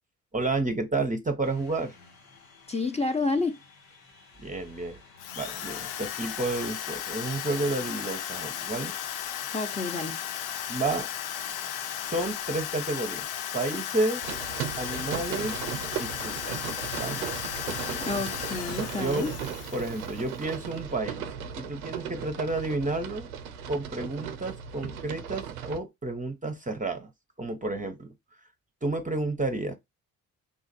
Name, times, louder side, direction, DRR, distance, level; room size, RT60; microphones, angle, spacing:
voice 1, 0.3-2.0 4.4-5.0 5.3-8.9 10.7-11.1 11.4-11.6 12.1-13.3 13.5-14.3 14.8-15.6 16.0-16.6 16.9-17.3 17.7-18.0 19.0-19.3 19.7-21.2 21.6-23.3 23.7-27.1 27.4-28.1 28.8-29.7, right 2 dB, 20° right, 0.8 m, -31 dB
sound 1, 1.4-16.6, left 4 dB, 85° left, 1.1 m, -55 dB
voice 2, 2.7-3.6 9.5-10.2 18.0-19.3, left 3 dB, 15° left, 0.8 m, -29 dB
Drill, 5.2-20.4, left 10 dB, 60° left, 0.6 m, -35 dB
sound 2, 14.2-25.8, right 8 dB, 90° right, 0.5 m, -37 dB
3.7 x 2.4 x 4.0 m
hypercardioid pair, 50°, 42 cm